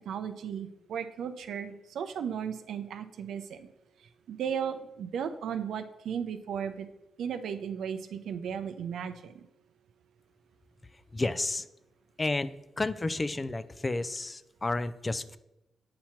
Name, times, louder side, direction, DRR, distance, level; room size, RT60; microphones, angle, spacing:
voice 1, 0.1-3.7 4.3-6.9 7.2-9.4, right 7 dB, 80° right, 9 dB, 0.5 m, -35 dB
voice 2, 11.1-11.7 12.2-12.5 12.8-15.4, left 2 dB, 25° left, 14 dB, 0.4 m, -31 dB
8.5 x 3.0 x 5.6 m, 0.90 s
cardioid pair, 75°, 0 cm